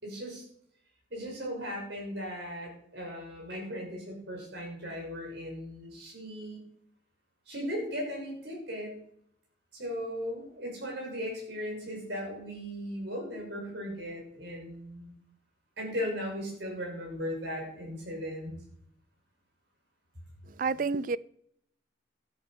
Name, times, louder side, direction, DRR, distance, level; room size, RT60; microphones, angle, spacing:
voice 1, 0.0-0.4 1.1-6.6 7.5-8.9 9.7-15.1 15.8-18.6, equal, 60° right, 6.2 m, -37 dB
voice 2, 20.5-21.2, right 4 dB, 45° right, 0.4 m, -29 dB
12.5 x 9.4 x 5.7 m
head